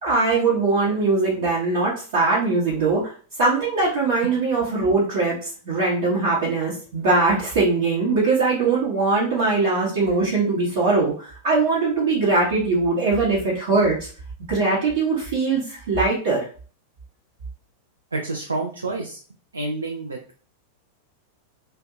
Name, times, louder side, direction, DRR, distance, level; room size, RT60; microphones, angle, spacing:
voice 1, 0.0-3.0 3.4-5.4 5.6-14.1 14.5-16.4, right 3 dB, 55° right, -7 dB, 0.9 m, -21 dB
voice 2, 18.1-19.2 19.5-20.4, right 2 dB, 75° right, 2 dB, 0.4 m, -29 dB
2.6 x 2.2 x 2.5 m, 0.39 s
figure-of-eight pair, 90°, 0 cm